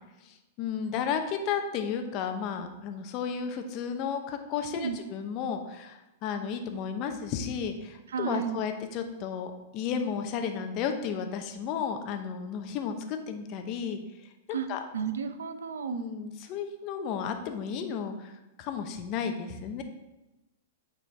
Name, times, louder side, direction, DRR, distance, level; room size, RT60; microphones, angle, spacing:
voice 1, 0.2-14.0 14.5-14.8 15.9-18.3 18.6-19.8, left 7 dB, 40° left, 6 dB, 0.8 m, -33 dB
voice 2, 8.1-8.6 14.5-14.7 14.9-16.1, right 7 dB, 90° right, 9 dB, 0.6 m, -32 dB
8.8 x 4.5 x 3.4 m, 1.0 s
hypercardioid pair, 130°, 0 cm